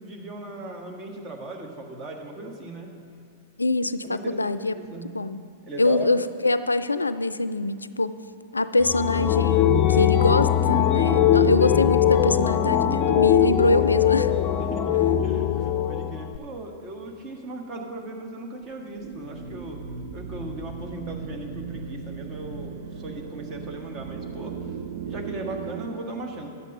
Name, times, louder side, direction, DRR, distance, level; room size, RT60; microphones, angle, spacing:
voice 1, 0.0-2.9 4.0-5.1 5.7-6.3 14.7-19.8 20.1-24.7 25.1-26.5, right 2 dB, 30° right, 2 dB, 1.6 m, -37 dB
voice 2, 3.6-4.7 5.1-5.4 5.8-8.2 8.5-14.3, left 2 dB, 90° left, 13 dB, 0.3 m, -24 dB
sound 1, 8.8-16.4, left 10 dB, 35° left, 0.5 m, -21 dB
sound 2, 18.6-25.9, right 6 dB, 55° right, 0.7 m, -37 dB
11.5 x 8.2 x 5.4 m, 2.5 s
figure-of-eight pair, 100°, 0 cm